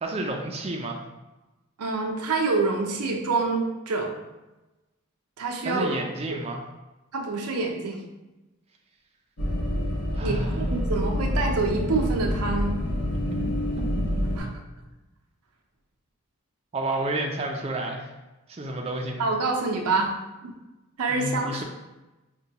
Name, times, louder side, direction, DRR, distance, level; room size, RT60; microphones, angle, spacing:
voice 1, 0.0-1.0 5.6-6.6 10.1-10.6 13.2-13.5 13.8-13.9 16.7-18.1 18.5-19.3 21.1-21.6, right 2 dB, 25° right, 1 dB, 0.3 m, -30 dB
voice 2, 1.8-4.1 5.4-6.4 7.1-8.0 10.2-12.8 14.4-14.5 19.2-20.1 20.4-20.5 21.0-21.6, right 3 dB, 90° right, 1 dB, 0.6 m, -26 dB
sound 1, 9.4-14.4, left 1 dB, 80° left, 0.9 m, -27 dB
5.0 x 2.2 x 2.8 m, 1.1 s
head